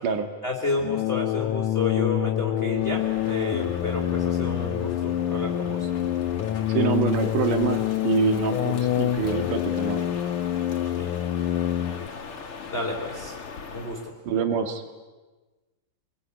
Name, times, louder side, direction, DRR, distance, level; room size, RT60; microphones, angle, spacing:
voice 1, 0.4-5.9 10.9-11.1 12.7-13.4 13.7-14.1, left 2 dB, 20° left, 0 dB, 3.2 m, -31 dB
sound 1, 0.8-12.1, left 12 dB, 75° left, 2.4 m, -26 dB
Crow, 2.7-14.1, left 4 dB, 45° left, 2.8 m, -40 dB
voice 2, 6.7-10.1 14.3-14.8, right 7 dB, 75° right, 6 dB, 3.7 m, -26 dB
27.5 x 22.0 x 9.8 m, 1.2 s
omnidirectional pair, 3.7 m